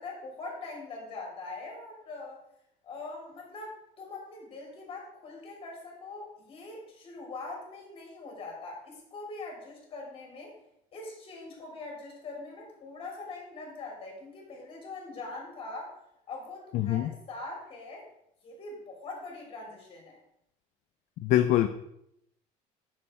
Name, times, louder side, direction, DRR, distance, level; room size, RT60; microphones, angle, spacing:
voice 1, 0.0-2.4 2.8-10.5 10.9-15.9 16.3-18.0 18.4-20.2, left 3 dB, 40° left, 0 dB, 3.3 m, -42 dB
voice 2, 16.7-17.1 21.2-21.7, left 13 dB, 60° left, 9 dB, 0.5 m, -24 dB
8.7 x 6.6 x 4.4 m, 0.78 s
cardioid pair, 155°, 14 cm